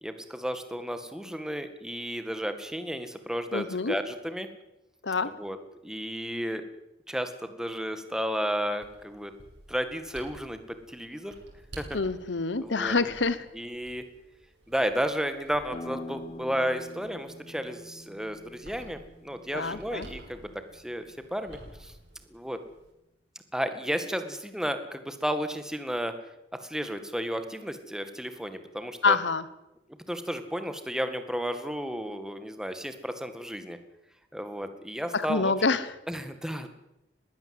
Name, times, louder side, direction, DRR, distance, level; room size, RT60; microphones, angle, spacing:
voice 1, 0.0-4.5 5.4-5.6 5.8-6.6 7.1-9.3 9.7-10.6 10.9-11.3 11.8-11.9 12.6-12.9 13.5-14.0 14.7-21.9 22.3-22.6 23.5-26.1 26.6-29.2 30.1-33.8 34.3-35.5 36.1-36.7, equal, 5° right, 9 dB, 1.9 m, -33 dB
voice 2, 3.5-4.0 5.0-5.3 11.9-13.4 19.5-20.1 29.0-29.4 35.1-35.9, left 4 dB, 80° left, 16 dB, 1.1 m, -26 dB
sound 1, 8.8-22.9, right 1 dB, 65° right, 5.7 m, -52 dB
sound 2, 15.7-21.1, left 1 dB, 30° left, 1.1 m, -45 dB
21.0 x 16.5 x 7.9 m, 0.89 s
head